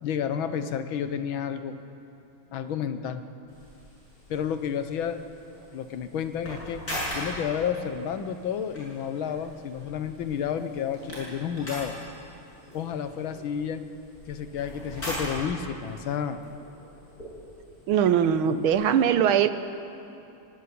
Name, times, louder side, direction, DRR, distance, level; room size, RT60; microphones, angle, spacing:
voice 1, 0.0-1.8 2.5-3.2 4.3-5.2 5.7-6.8 7.1-12.0 12.7-13.8 14.3-16.4, left 8 dB, 75° left, 10 dB, 1.7 m, -31 dB
sound 1, 3.5-19.0, equal, 45° left, 8.0 m, -41 dB
voice 2, 17.9-19.5, right 8 dB, 90° right, 11 dB, 1.7 m, -21 dB
24.5 x 13.0 x 9.5 m, 2.8 s
omnidirectional pair, 2.2 m